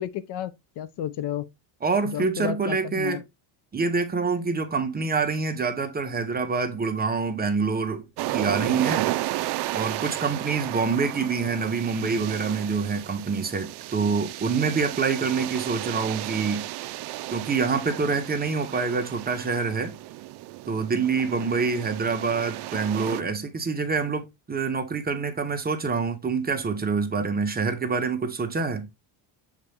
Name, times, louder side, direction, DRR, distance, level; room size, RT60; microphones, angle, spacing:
voice 1, 0.0-1.5 2.1-3.2, left 11 dB, 55° left, 0.7 m, -32 dB
voice 2, 1.8-3.2 3.7-8.1 8.3-9.1 9.7-16.7 17.3-20.0 20.7-28.9, right 4 dB, 20° right, 0.9 m, -26 dB
sound 1, 8.2-23.2, right 16 dB, 55° right, 0.5 m, -33 dB
7.2 x 4.0 x 3.4 m
cardioid pair, 140°, 48 cm